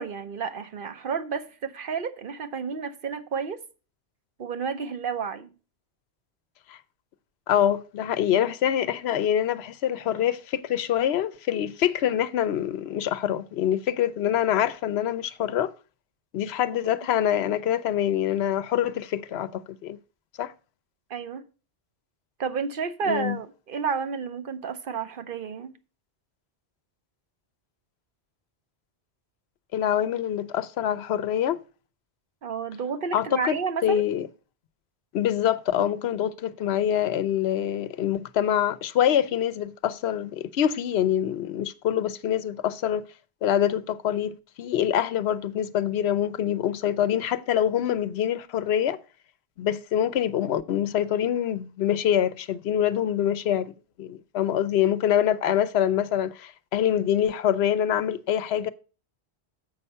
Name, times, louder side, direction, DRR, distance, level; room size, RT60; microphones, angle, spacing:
voice 1, 0.0-3.6 4.4-5.5 21.1-21.5 22.4-25.7 32.4-34.0, right 6 dB, 55° right, 0.9 m, -31 dB
voice 2, 7.5-15.7 16.3-20.0 20.4-20.5 23.1-23.4 29.7-31.6 33.1-34.3 35.1-43.0 43.4-49.0 49.6-53.7 54.0-58.7, left 10 dB, 75° left, 0.8 m, -25 dB
7.3 x 5.4 x 5.4 m
omnidirectional pair, 1.1 m